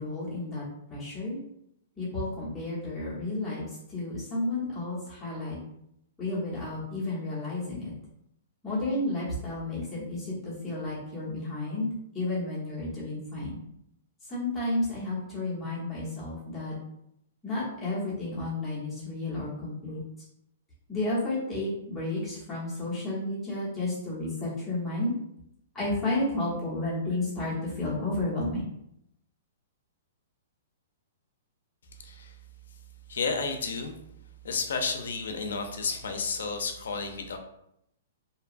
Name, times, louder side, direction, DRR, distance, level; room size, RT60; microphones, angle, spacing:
voice 1, 0.0-1.4 2.0-5.6 6.2-7.9 8.6-13.6 14.3-16.7 17.4-20.0 20.9-25.1 25.7-28.7, left 2 dB, 5° left, -9 dB, 0.9 m, -32 dB
voice 2, 32.0-32.4 33.1-34.0 34.4-37.4, left 4 dB, 85° left, 5 dB, 0.4 m, -31 dB
2.7 x 2.2 x 2.4 m, 0.77 s
hypercardioid pair, 175°, 0 cm